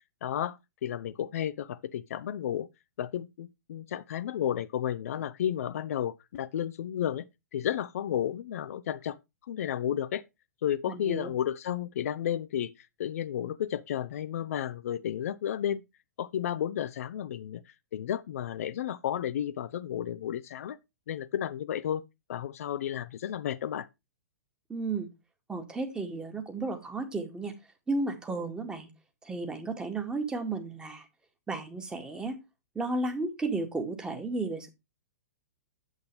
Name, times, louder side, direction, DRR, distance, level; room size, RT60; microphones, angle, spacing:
voice 1, 0.2-2.7 3.0-7.2 7.5-9.2 9.5-10.2 10.6-12.7 13.0-15.8 16.2-17.6 17.9-20.8 21.1-22.0 22.3-23.9, left 10 dB, 55° left, 0.6 m, -32 dB
voice 2, 10.9-11.3 24.7-25.1 25.5-27.5 27.9-28.9 29.2-31.1 31.5-32.4 32.8-34.7, right 3 dB, 10° right, 2.0 m, -33 dB
9.1 x 7.8 x 3.4 m
figure-of-eight pair, 115°, 9 cm